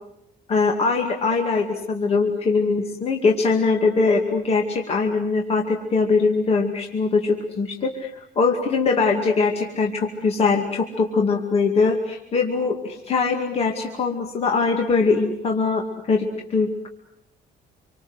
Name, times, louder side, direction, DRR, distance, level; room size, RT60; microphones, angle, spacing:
voice 1, 0.5-8.1 8.4-16.9, left 4 dB, 35° left, 2 dB, 2.4 m, -22 dB
27.5 x 24.0 x 8.1 m, 0.77 s
cardioid pair, 180°, 18 cm